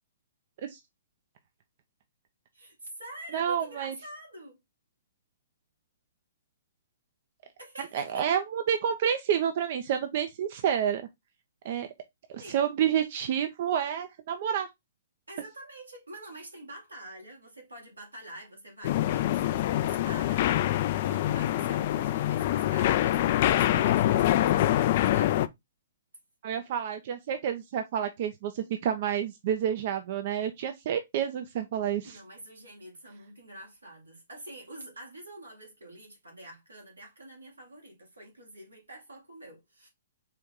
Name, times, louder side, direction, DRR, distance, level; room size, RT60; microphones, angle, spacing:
voice 1, 2.5-4.6 7.6-8.3 12.4-12.6 15.3-25.4 32.0-39.9, right 1 dB, 90° right, 2.3 m, -46 dB
voice 2, 3.3-3.9 7.8-11.1 11.6-11.9 12.3-14.7 26.4-32.2, right 9 dB, 50° right, 0.5 m, -29 dB
sound 1, 18.8-25.5, left 13 dB, 45° left, 0.3 m, -25 dB
4.5 x 2.6 x 3.6 m
figure-of-eight pair, 120°, 0 cm